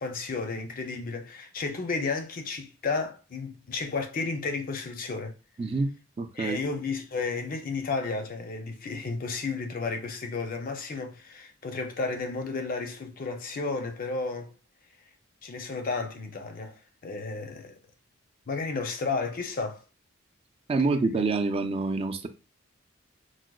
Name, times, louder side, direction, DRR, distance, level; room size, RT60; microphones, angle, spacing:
voice 1, 0.0-5.3 6.3-14.5 15.4-17.8 18.5-19.8, left 4 dB, 45° left, 0.6 m, -32 dB
voice 2, 5.6-5.9 6.2-6.6 20.7-22.3, right 3 dB, 30° right, 0.4 m, -27 dB
4.8 x 2.1 x 2.3 m
head